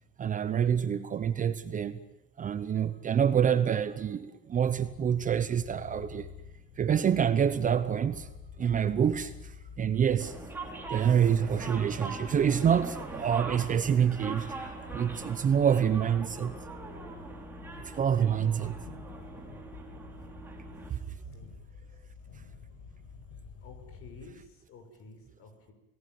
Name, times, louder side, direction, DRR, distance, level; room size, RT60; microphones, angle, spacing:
voice 1, 0.2-2.0 2.4-6.3 6.8-8.3 8.6-10.3 10.9-16.6 17.8-18.8 20.9-21.2, right 8 dB, 25° right, 0.9 m, -27 dB
sound 1, 4.6-24.3, left 6 dB, 65° left, 5.3 m, -49 dB
sound 2, 10.2-20.9, right 3 dB, 5° right, 4.5 m, -42 dB
voice 2, 23.6-25.7, left 3 dB, 45° left, 6.4 m, -51 dB
29.0 x 19.0 x 9.5 m
cardioid pair, 155°, 31 cm